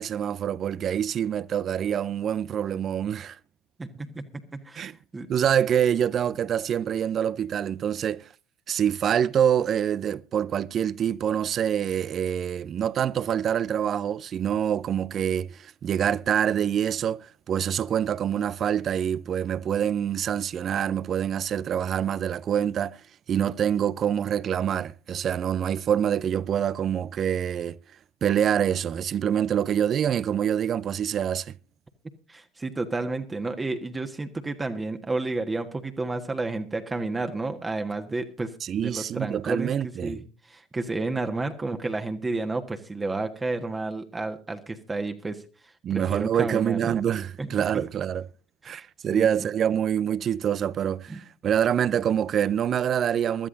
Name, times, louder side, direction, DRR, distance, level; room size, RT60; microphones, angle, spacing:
voice 1, 0.0-3.4 4.8-5.0 5.3-8.3 8.7-23.0 23.3-27.8 28.2-31.5 38.6-40.2 45.8-48.3 48.6-53.5, right 9 dB, 40° right, 0.5 m, -26 dB
voice 2, 3.8-5.3 32.3-38.5 38.8-39.7 40.0-45.4 45.9-47.0 47.4-47.6 48.6-48.8 49.1-49.3 51.1-51.2, right 3 dB, 20° right, 1.4 m, -31 dB
23.5 x 12.5 x 2.6 m
hypercardioid pair, 70°, 0 cm